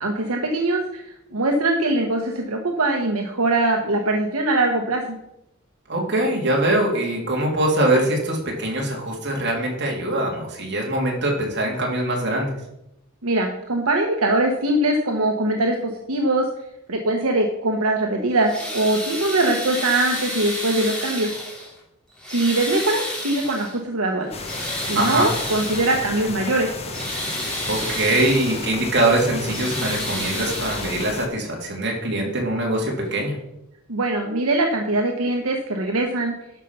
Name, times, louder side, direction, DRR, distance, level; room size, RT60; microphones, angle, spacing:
voice 1, 0.0-5.0 13.2-16.4 16.9-21.3 22.3-24.3 24.9-26.7 33.9-36.3, right 2 dB, 80° right, 2 dB, 1.2 m, -22 dB
voice 2, 5.9-12.5 24.9-25.3 27.7-33.3, right 1 dB, 55° right, -1 dB, 3.1 m, -23 dB
sound 1, 18.3-21.8 22.2-23.8 24.2-26.2 26.7-28.7 29.2-31.3 32.4-32.5 33.1-33.2, left 1 dB, 5° left, 2.9 m, -31 dB
sound 2, 24.3-31.3, left 3 dB, 30° left, 1.1 m, -33 dB
12.0 x 5.5 x 5.8 m, 0.83 s
head